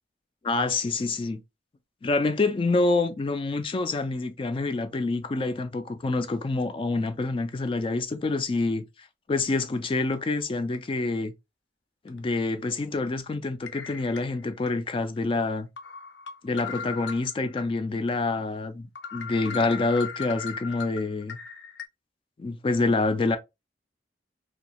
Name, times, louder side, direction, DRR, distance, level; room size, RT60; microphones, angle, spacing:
voice 1, 0.4-1.4 2.0-8.8 9.3-11.3 12.0-15.7 16.4-21.4 22.4-23.4, left 3 dB, 30° left, 0.3 m, -27 dB
sound 1, 10.1-10.3 10.7-10.9 12.1-12.2 13.7-14.7 15.2-15.3 15.8-17.7 18.1-18.2 18.6-18.7 19.0-21.8, left 6 dB, 85° left, 0.6 m, -38 dB
2.7 x 2.4 x 2.9 m
head